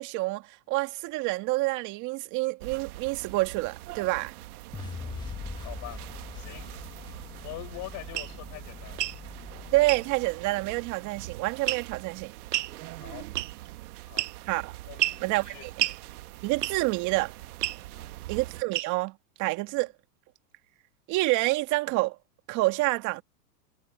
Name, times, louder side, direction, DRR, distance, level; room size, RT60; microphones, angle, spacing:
voice 1, 0.0-4.3 9.7-12.3 14.5-14.8 15.2-15.7 16.4-17.3 18.3-19.9 21.1-22.2 22.5-23.2, right 21 dB, 35° right, 2.1 m, -28 dB
sound 1, 2.6-18.6, right 17 dB, 60° right, 1.7 m, -44 dB
sound 2, 4.7-10.9, left 4 dB, 10° left, 1.6 m, -42 dB
voice 2, 5.6-6.0 6.3-6.7 7.4-9.0 13.0-13.3 14.0-14.2 14.9-15.7 17.9-18.2 19.7-19.9, left 20 dB, 35° left, 4.7 m, -43 dB
sound 3, 8.1-8.3 8.9-9.2 9.9-10.1 11.7-12.0 12.5-12.7 13.4-13.7 14.2-14.5 15.0-15.2 15.8-16.0 16.6-16.9 17.6-17.8 18.7-19.1, right 14 dB, 80° right, 1.1 m, -29 dB
hypercardioid pair, 135°, 48 cm